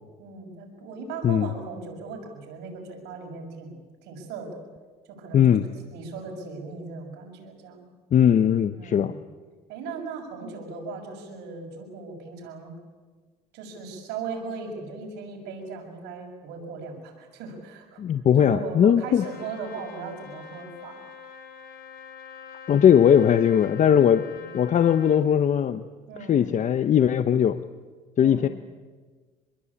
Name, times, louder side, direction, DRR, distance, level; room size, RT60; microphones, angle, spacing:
voice 1, 0.2-4.6 5.1-5.6 5.9-7.9 8.7-9.1 9.7-12.7 13.5-18.0 18.3-21.0 26.1-26.5 28.2-28.5, right 4 dB, 90° right, 2 dB, 6.6 m, -38 dB
voice 2, 5.3-5.7 8.1-9.1 18.0-19.3 22.7-24.2 24.5-25.8 26.3-27.6 28.2-28.5, left 9 dB, 45° left, 11 dB, 0.9 m, -19 dB
Trumpet, 19.2-25.2, left 7 dB, 65° left, 4.7 m, -45 dB
26.0 x 21.5 x 8.6 m, 1.4 s
cardioid pair, 110°, 17 cm